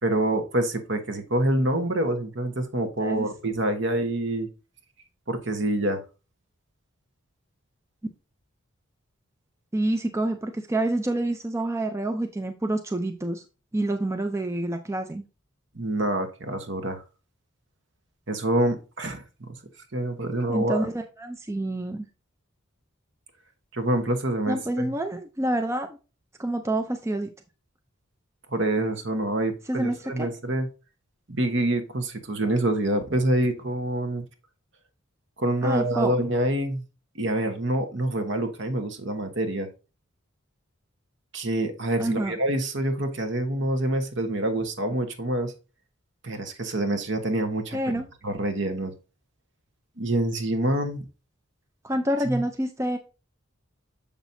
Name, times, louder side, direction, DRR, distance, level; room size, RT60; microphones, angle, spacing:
voice 1, 0.0-4.5 5.3-6.0 15.7-17.0 18.3-19.5 19.9-20.9 23.7-24.9 28.5-30.7 31.3-34.2 35.4-36.8 37.1-39.7 41.3-45.5 46.2-47.8 48.2-48.9 50.0-51.0 52.3-52.4, right 1 dB, 60° right, 1.2 m, -26 dB
voice 2, 9.7-13.4 13.7-15.2 20.5-22.1 24.5-25.9 26.4-27.3 29.7-30.3 35.6-36.1 42.0-42.3 47.7-48.1 51.8-53.0, right 1 dB, 15° right, 0.4 m, -27 dB
7.0 x 6.0 x 2.7 m
head